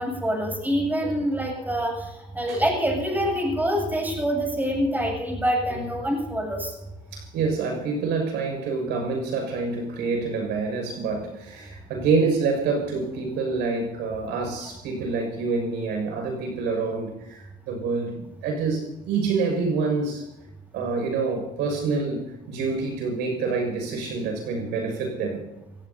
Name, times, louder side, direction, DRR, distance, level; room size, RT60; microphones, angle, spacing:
voice 1, 0.0-6.8, equal, 10° right, 1 dB, 7.9 m, -26 dB
voice 2, 7.1-20.2 20.7-25.4, right 4 dB, 90° right, 3 dB, 6.2 m, -27 dB
28.0 x 17.5 x 2.8 m, 0.96 s
cardioid pair, 110°, 17 cm